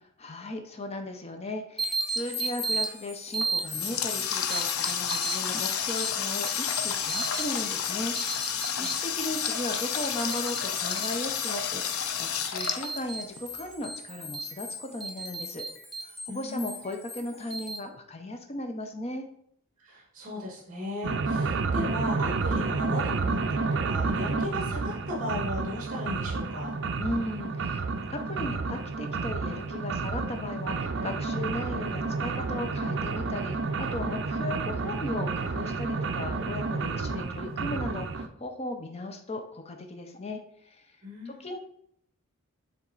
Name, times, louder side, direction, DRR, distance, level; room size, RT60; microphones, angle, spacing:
voice 1, 0.2-8.1 8.4-15.7 16.0-19.3 27.0-40.9 41.3-41.6, left 1 dB, 30° left, 5 dB, 0.6 m, -37 dB
sound 1, 1.8-17.8, right 1 dB, ahead, 0.8 m, -36 dB
Water tap faucet, 3.4-13.6, left 8 dB, 80° left, 0.6 m, -31 dB
voice 2, 8.6-9.0 16.3-16.9 19.8-26.7 41.0-41.5, left 1 dB, 35° right, -2 dB, 1.6 m, -37 dB
sound 2, 21.0-38.3, right 4 dB, 55° right, 0.5 m, -30 dB
7.2 x 3.5 x 3.9 m, 0.67 s
head